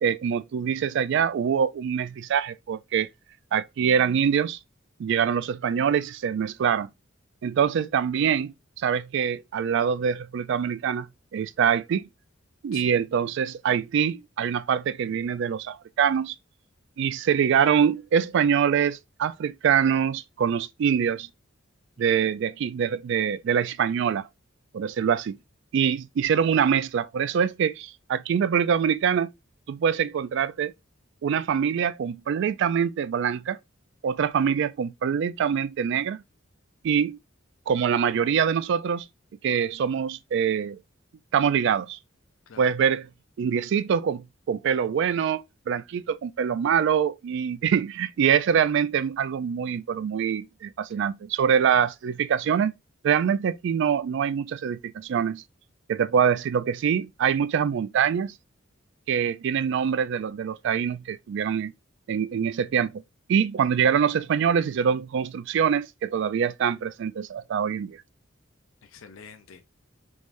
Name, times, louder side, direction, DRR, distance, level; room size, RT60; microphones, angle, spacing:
voice 1, 0.0-3.1 3.5-4.6 5.0-6.9 7.4-12.1 12.6-16.3 17.0-21.3 22.0-24.3 24.7-25.4 25.7-29.3 29.7-30.7 31.2-33.6 34.0-36.2 36.8-37.2 37.7-39.1 39.4-40.8 41.3-42.0 42.6-43.1 43.4-52.7 53.0-55.4 55.9-58.3 59.1-61.7 62.1-63.0 63.3-68.0, right 7 dB, 60° right, 0.3 m, -24 dB
voice 2, 68.8-69.6, left 6 dB, 90° left, 0.5 m, -47 dB
3.6 x 3.1 x 2.5 m
head